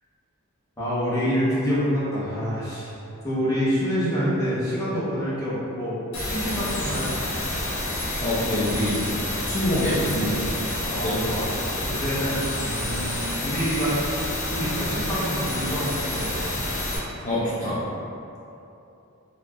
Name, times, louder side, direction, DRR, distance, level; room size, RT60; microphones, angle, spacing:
voice 1, 0.8-3.0 3.2-6.0 6.3-7.2 10.9-11.5 11.8-13.9 14.5-16.4, equal, 15° left, -11 dB, 1.1 m, -27 dB
sound 1, 6.1-17.0, left 1 dB, 75° left, 1.0 m, -29 dB
voice 2, 8.2-9.0 9.4-10.6 10.9-11.2 17.2-17.8, equal, 40° left, -11 dB, 0.5 m, -25 dB
4.2 x 2.8 x 2.4 m, 2.8 s
head